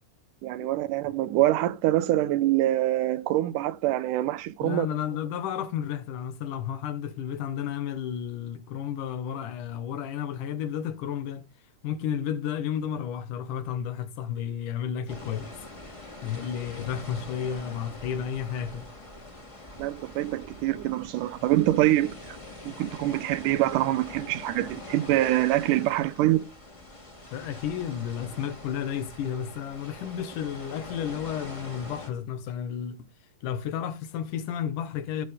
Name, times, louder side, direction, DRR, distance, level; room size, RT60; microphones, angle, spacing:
voice 1, 0.4-4.9 19.8-22.2 22.7-26.5, right 15 dB, 85° right, 2.2 m, -25 dB
voice 2, 4.6-11.5 11.8-15.5 16.2-18.9 27.3-33.1 33.4-35.3, left 9 dB, 90° left, 2.7 m, -32 dB
sound 1, 15.1-32.1, left 2 dB, 15° left, 1.5 m, -44 dB
16.0 x 6.6 x 3.4 m
omnidirectional pair, 3.6 m